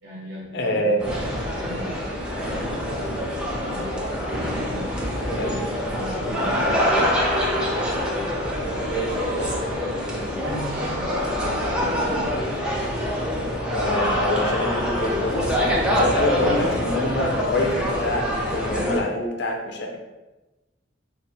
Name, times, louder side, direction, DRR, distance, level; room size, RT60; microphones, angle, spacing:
voice 1, 0.0-1.0 1.4-2.0 2.3-3.1 3.6-4.0 4.6-8.1 8.6-9.9 10.2-12.4, equal, 65° right, -6 dB, 0.9 m, -38 dB
voice 2, 0.5-1.0 5.4-5.5 13.7-20.0, left 1 dB, 55° left, 1 dB, 0.5 m, -26 dB
sound 1, 1.0-19.0, equal, 5° right, 0.5 m, -25 dB
3.9 x 2.0 x 4.2 m, 1.1 s
head